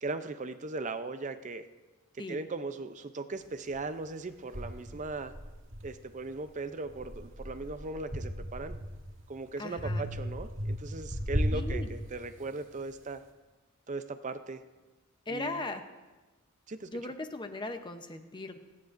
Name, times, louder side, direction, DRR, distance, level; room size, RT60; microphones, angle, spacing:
voice 1, 0.0-1.7 2.3-5.3 5.8-8.7 9.3-13.2 13.9-14.6 15.3-15.6 16.7-16.9, right 3 dB, 35° right, 10 dB, 0.5 m, -38 dB
sound 1, 3.7-3.8 4.5-6.4 6.8-9.2 9.8-12.5, equal, 60° right, 2.2 m, -36 dB
voice 2, 9.6-10.1 11.5-11.9 15.3-15.8 16.9-18.6, left 2 dB, 20° left, 7 dB, 0.7 m, -38 dB
26.5 x 9.5 x 2.6 m, 1.2 s
head